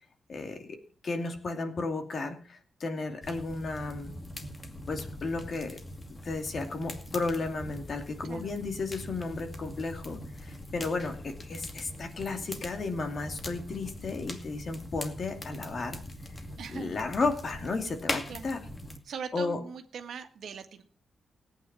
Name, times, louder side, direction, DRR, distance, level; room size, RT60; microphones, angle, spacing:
voice 1, 0.3-0.8 1.0-4.1 4.9-5.8 6.2-16.0 16.7-18.6 19.3-19.6, left 3 dB, 45° left, 5 dB, 2.6 m, -33 dB
sound 1, 3.2-19.0, left 1 dB, 25° left, 2.3 m, -42 dB
voice 2, 16.6-17.0 18.3-18.6 19.0-20.8, right 6 dB, 70° right, 7 dB, 1.7 m, -41 dB
17.0 x 9.1 x 6.1 m, 0.41 s
cardioid pair, 115°, 0 cm